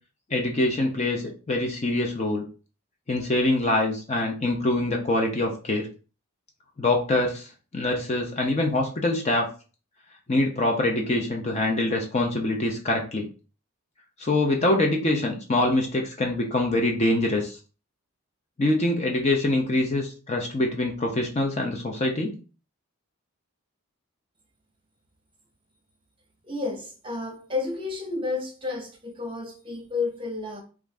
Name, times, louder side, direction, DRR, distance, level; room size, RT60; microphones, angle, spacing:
voice 1, 0.3-2.4 3.1-5.9 6.8-7.5 7.7-9.5 10.3-13.3 14.2-17.6 18.6-22.4, left 2 dB, 30° left, 0.5 m, -24 dB
voice 2, 26.4-30.6, left 3 dB, 25° right, 0.8 m, -31 dB
3.0 x 2.4 x 3.4 m
head